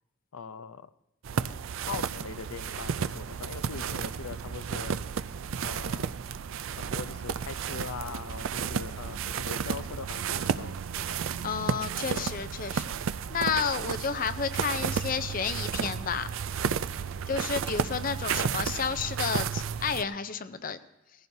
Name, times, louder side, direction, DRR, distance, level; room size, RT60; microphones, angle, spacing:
voice 1, 0.3-0.9 1.9-5.0 5.6-6.1 6.7-10.8 12.1-12.3 16.6-17.0, left 6 dB, 85° left, 14 dB, 0.6 m, -41 dB
sound 1, 1.2-20.0, right 7 dB, 65° right, 0.4 m, -32 dB
voice 2, 11.4-12.8 13.3-16.3 17.3-20.8, left 6 dB, 40° left, 11 dB, 0.5 m, -31 dB
19.5 x 15.0 x 2.7 m, 0.91 s
head